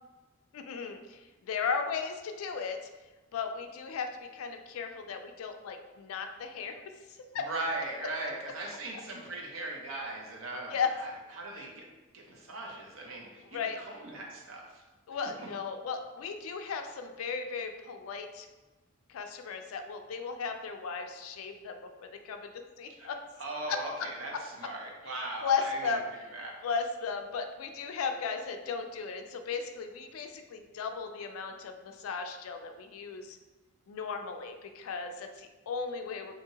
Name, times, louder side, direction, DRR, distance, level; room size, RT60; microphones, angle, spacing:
voice 1, 0.5-2.8 3.3-6.9 7.3-7.5 10.7-10.9 13.5-13.8 15.1-18.5 19.1-23.2 23.7-23.8 25.4-26.0 26.6-33.4 33.9-36.3, left 5 dB, 85° left, 6 dB, 0.3 m, -36 dB
voice 2, 7.3-11.8 12.1-14.8 15.4-15.5 23.0-23.1 23.4-26.0 26.3-26.5, right 2 dB, 75° right, -1 dB, 0.7 m, -39 dB
2.8 x 2.7 x 2.8 m, 1.2 s
head